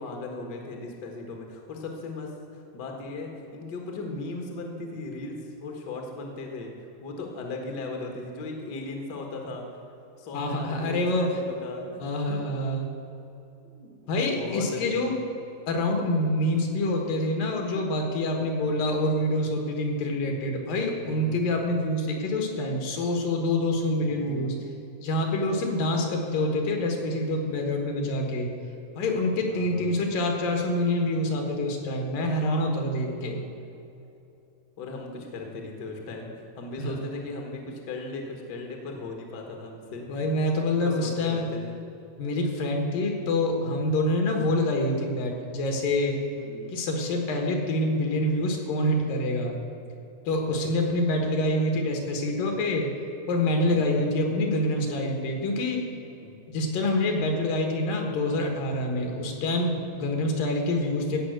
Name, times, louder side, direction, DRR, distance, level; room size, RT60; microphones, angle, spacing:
voice 1, 0.0-6.7 7.0-9.6 10.2-12.4 13.7-15.2 20.9-21.4 24.0-24.6 29.3-29.9 33.0-33.1 34.8-40.1 40.8-41.7 46.4-46.7 50.4-50.7 56.2-56.4 58.9-59.1, left 3 dB, 50° left, 1 dB, 1.3 m, -38 dB
voice 2, 10.3-11.3 12.0-12.9 14.1-15.2 15.7-24.5 25.0-28.5 29.0-33.4 36.8-37.0 40.1-41.5 42.2-46.2 46.7-49.6 50.3-52.9 53.3-55.8 56.5-61.2, left 1 dB, 70° left, 2 dB, 3.0 m, -26 dB
16.0 x 5.6 x 7.9 m, 2.8 s
omnidirectional pair, 4.2 m